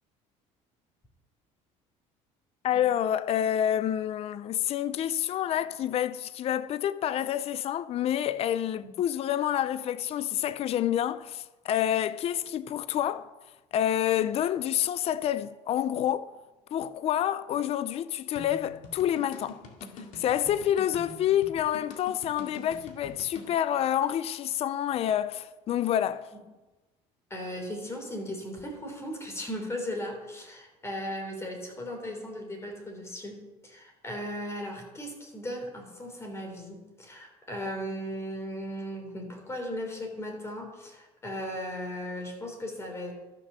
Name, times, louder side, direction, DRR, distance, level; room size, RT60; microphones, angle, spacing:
voice 1, 2.6-13.3 13.7-16.3 16.7-19.6 20.0-26.3, left 11 dB, 50° left, 0.5 m, -28 dB
sound 1, 18.4-23.5, left 3 dB, 65° left, 2.2 m, -45 dB
voice 2, 27.3-43.1, equal, 20° left, 3.3 m, -37 dB
13.0 x 5.9 x 6.8 m
supercardioid pair, 105°, 14 cm